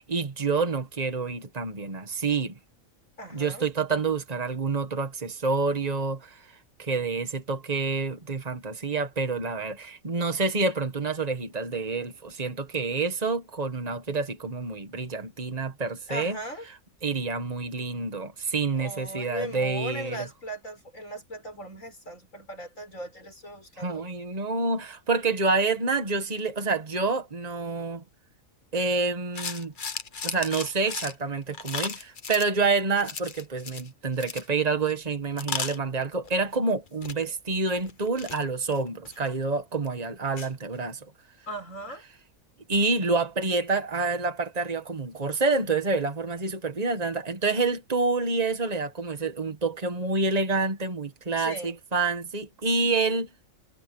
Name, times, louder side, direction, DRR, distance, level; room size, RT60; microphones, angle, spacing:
voice 1, 0.1-2.6 3.3-6.4 6.8-16.4 17.0-20.3 23.8-28.0 28.7-29.7 30.2-41.0 42.7-53.3, right 3 dB, 30° right, 1.9 m, -28 dB
voice 2, 3.2-3.7 16.1-16.6 18.7-24.1 41.5-42.0 51.4-51.8, right 1 dB, 70° left, 8.0 m, -38 dB
sound 1, 29.3-32.5 33.0-33.9 34.1-34.5 34.9-35.0 35.4-36.6 36.9-37.2 37.8-39.4 39.9-40.0 40.4-40.5, left 5 dB, 40° left, 1.2 m, -35 dB
omnidirectional pair, 1.4 m